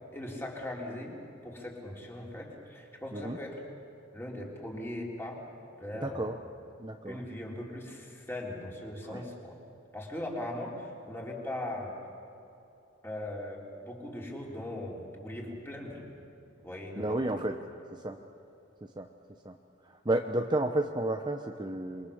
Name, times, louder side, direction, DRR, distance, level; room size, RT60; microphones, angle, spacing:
voice 1, 0.1-3.6 4.1-5.4 5.8-6.4 7.1-9.6 9.9-11.9 13.0-16.1 16.6-17.5, left 1 dB, 10° left, -2 dB, 3.7 m, -39 dB
voice 2, 6.0-6.4 6.8-7.2 9.1-9.2 17.0-17.6 17.9-18.2 18.8-19.1 19.4-19.6 19.8-22.1, right 1 dB, 20° right, 4 dB, 0.8 m, -32 dB
27.5 x 23.0 x 7.2 m, 3.0 s
head